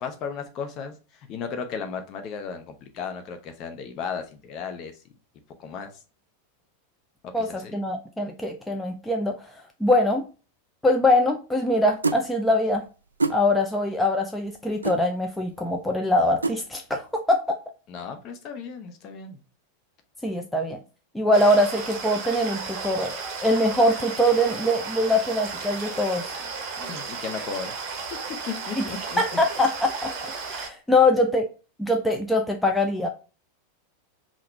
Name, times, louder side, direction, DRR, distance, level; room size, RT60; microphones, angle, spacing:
voice 1, 0.0-4.9 5.6-5.9 7.4-7.8 17.9-19.4 26.9-27.7 28.5-29.2, left 6 dB, 35° left, 7 dB, 0.9 m, -35 dB
voice 2, 7.3-10.2 10.8-12.8 13.3-17.6 20.2-20.8 21.1-26.3 28.8-28.9 29.2-31.5 31.8-33.1, left 1 dB, 5° left, 2 dB, 0.5 m, -23 dB
sound 1, 12.0-12.2 13.2-13.4 14.8-15.0 16.4-16.6, right 3 dB, 75° right, 0.3 m, -24 dB
sound 2, 21.3-30.7, right 5 dB, 35° right, 1.0 m, -34 dB
5.7 x 2.5 x 3.3 m, 0.34 s
figure-of-eight pair, 90°, 0 cm